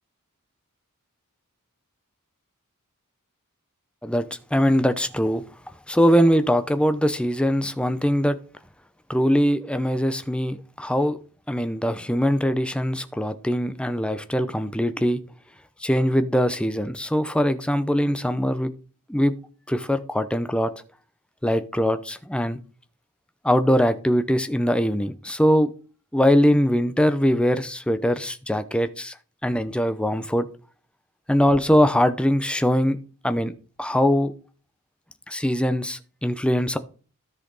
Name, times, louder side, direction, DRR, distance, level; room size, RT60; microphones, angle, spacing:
voice 1, 4.5-5.4 5.9-8.4 9.1-11.2 11.5-15.2 15.8-18.7 19.1-19.3 19.7-20.7 21.4-22.6 23.4-25.7 26.1-29.1 29.4-30.5 31.3-33.0 33.2-33.5 33.8-34.3 35.3-36.8, equal, 5° left, 0.7 m, -22 dB
13.5 x 5.7 x 4.0 m
head